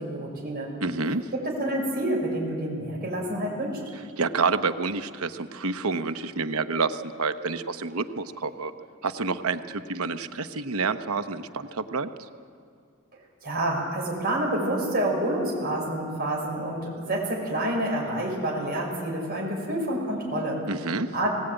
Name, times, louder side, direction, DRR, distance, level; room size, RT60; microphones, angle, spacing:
voice 1, 0.0-0.7 1.3-3.8 13.4-20.6 21.1-21.3, right 1 dB, 45° right, -2 dB, 5.9 m, -28 dB
voice 2, 0.8-1.2 4.2-8.7 9.0-12.1 20.7-21.1, right 4 dB, 80° right, 10 dB, 1.0 m, -28 dB
19.0 x 18.5 x 9.1 m, 2.2 s
head